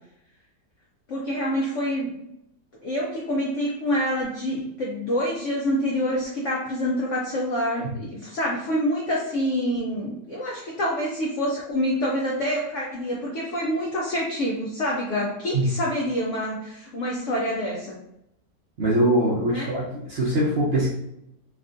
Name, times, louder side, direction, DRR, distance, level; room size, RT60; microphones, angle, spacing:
voice 1, 1.1-2.2 2.8-18.0 19.5-19.7, equal, 80° left, -3 dB, 0.6 m, -27 dB
voice 2, 18.8-20.9, right 1 dB, 60° right, -7 dB, 0.7 m, -22 dB
3.5 x 2.4 x 2.5 m, 0.80 s
omnidirectional pair, 1.8 m